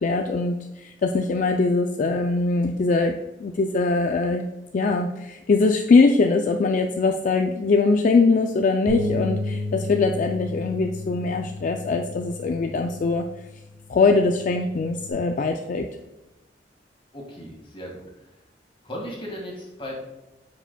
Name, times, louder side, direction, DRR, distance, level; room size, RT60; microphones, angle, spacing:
voice 1, 0.0-3.1 3.4-13.2 13.9-15.9, left 3 dB, 45° left, 4 dB, 0.3 m, -22 dB
Bass guitar, 8.9-15.1, left 2 dB, 65° right, 1.4 m, -33 dB
voice 2, 17.1-18.3 18.8-20.0, equal, 30° left, -2 dB, 1.7 m, -36 dB
8.8 x 4.9 x 2.2 m, 1.0 s
head